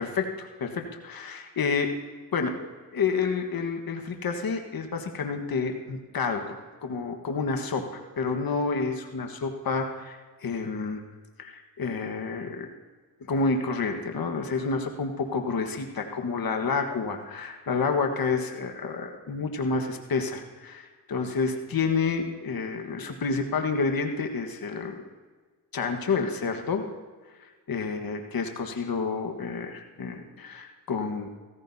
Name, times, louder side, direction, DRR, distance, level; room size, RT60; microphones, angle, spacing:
voice 1, 0.0-1.9 2.3-2.7 2.9-11.0 11.4-12.7 13.2-25.0 25.7-26.8 27.4-31.3, left 4 dB, 50° left, 4 dB, 1.5 m, -29 dB
16.5 x 15.0 x 2.8 m, 1.4 s
cardioid pair, 60°, 46 cm